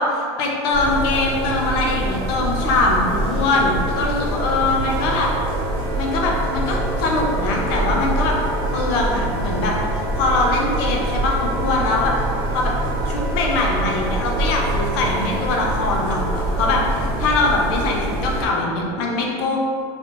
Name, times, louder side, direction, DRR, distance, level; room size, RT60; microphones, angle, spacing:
voice 1, 0.0-5.3 6.0-8.3 8.7-12.1 12.5-12.7 13.0-19.6, left 2 dB, 80° left, -1 dB, 0.6 m, -22 dB
sound 1, 0.7-18.5, right 1 dB, 80° right, 0.9 m, -25 dB
Wind instrument woodwind instrument, 4.2-16.8, right 4 dB, 15° right, 0.4 m, -34 dB
3.5 x 2.1 x 2.4 m, 2.2 s
supercardioid pair, 125°, 13 cm